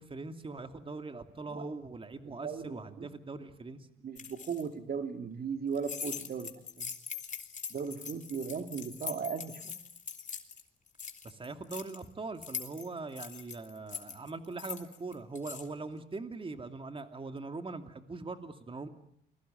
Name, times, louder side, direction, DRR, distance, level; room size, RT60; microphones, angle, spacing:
voice 1, 0.0-3.8 11.2-18.9, right 3 dB, 25° right, 7 dB, 2.7 m, -41 dB
voice 2, 2.2-3.1 4.0-6.9 7.7-9.8, right 6 dB, 50° right, 7 dB, 2.5 m, -37 dB
sound 1, 4.1-4.6 5.7-10.6 10.9-12.0 12.4-15.7, left 6 dB, 40° left, 3.2 m, -42 dB
29.0 x 22.0 x 9.2 m, 0.73 s
cardioid pair, 90°, 20 cm